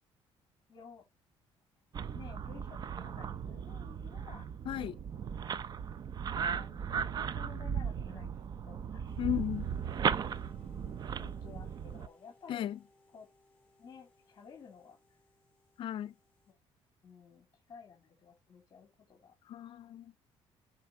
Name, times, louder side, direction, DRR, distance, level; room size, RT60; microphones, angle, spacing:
voice 1, 0.7-1.0 2.1-4.5 5.2-5.3 6.4-9.1 11.2-12.7 13.1-13.3 13.8-15.0 16.5-16.6 17.0-19.3, left 6 dB, 35° left, 3.3 m, -54 dB
sound 1, 1.9-12.1, right 7 dB, 45° right, 0.7 m, -37 dB
voice 2, 4.6-5.0 9.2-9.7 12.5-12.8 15.8-16.1 19.5-20.1, left 11 dB, 60° left, 0.6 m, -35 dB
sound 2, 9.0-16.5, left 2 dB, 10° left, 4.8 m, -66 dB
10.0 x 5.7 x 4.6 m
cardioid pair, 130°, 10 cm